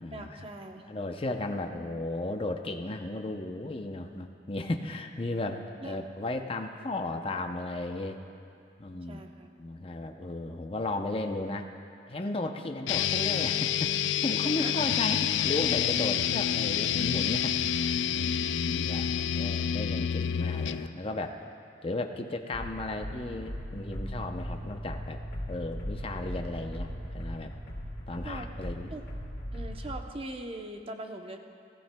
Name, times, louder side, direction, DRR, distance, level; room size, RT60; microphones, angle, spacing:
voice 1, 0.1-0.9 5.8-6.0 6.7-6.8 8.9-9.5 14.4-14.7 28.2-28.5 28.9-29.0 29.5-31.4, right 1 dB, 30° right, 4 dB, 0.7 m, -41 dB
voice 2, 0.9-8.2 8.8-11.7 12.1-21.4 21.8-25.2 25.5-27.5 28.1-28.9, left 2 dB, 30° left, 5 dB, 0.6 m, -35 dB
sound 1, 12.9-20.9, left 9 dB, 90° left, 0.4 m, -28 dB
sound 2, 22.5-30.0, equal, 75° left, 3.3 m, -39 dB
sound 3, 23.7-30.0, equal, 55° left, 1.9 m, -45 dB
18.5 x 14.0 x 2.2 m, 2.4 s
head